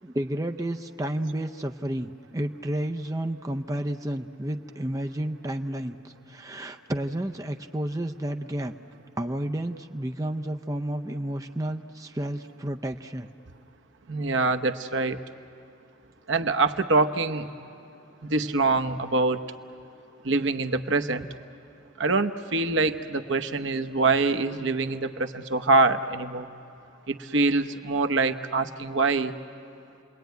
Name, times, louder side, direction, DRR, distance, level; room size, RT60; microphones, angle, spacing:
voice 1, 0.0-8.7 9.2-13.3, right 1 dB, 15° right, 5 dB, 0.6 m, -31 dB
voice 2, 14.1-15.2 16.3-17.5 18.3-19.4 20.2-21.3 22.0-26.5 27.1-29.3, right 3 dB, 60° right, 7 dB, 0.9 m, -24 dB
30.0 x 21.5 x 9.3 m, 2.8 s
head